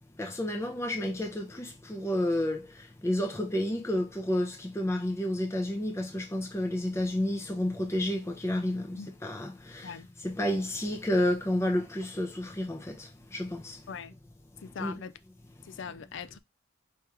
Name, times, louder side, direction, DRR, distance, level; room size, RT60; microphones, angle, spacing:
voice 1, 0.2-13.8 14.6-15.0 15.6-15.8, left 1 dB, 15° left, 0.6 m, -31 dB
voice 2, 14.6-15.1 15.6-16.4, left 6 dB, 65° left, 0.4 m, -41 dB
4.9 x 3.0 x 3.3 m
head